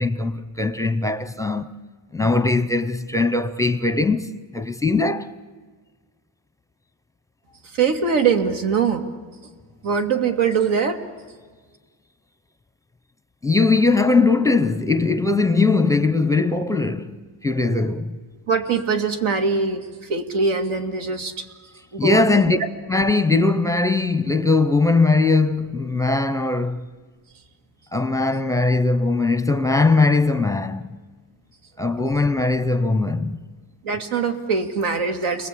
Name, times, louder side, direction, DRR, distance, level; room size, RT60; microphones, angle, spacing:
voice 1, 0.0-1.7 2.1-5.3 13.4-18.2 22.0-22.6 22.9-26.9 27.9-30.9 31.8-33.4, left 3 dB, 5° left, 0.7 m, -20 dB
voice 2, 7.7-9.0 9.8-11.0 18.5-21.5 21.9-22.6 33.8-35.5, right 5 dB, 80° right, 2.6 m, -22 dB
30.0 x 21.5 x 8.5 m
cardioid pair, 155°, 49 cm